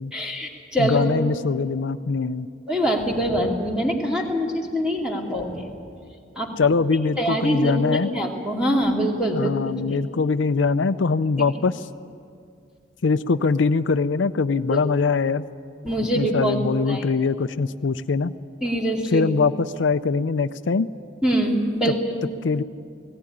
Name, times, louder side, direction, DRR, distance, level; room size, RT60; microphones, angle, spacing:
voice 1, 0.1-1.1 2.7-5.7 6.4-6.5 7.2-10.0 14.7-14.8 15.8-16.6 16.9-17.0 18.6-19.3 21.2-22.0, equal, 5° right, -1 dB, 2.6 m, -24 dB
voice 2, 0.8-2.5 6.6-8.1 9.3-11.8 13.0-15.5 16.2-18.3 19.1-20.9 22.4-22.6, left 4 dB, 75° left, 12 dB, 0.5 m, -22 dB
18.5 x 17.0 x 10.0 m, 2.3 s
head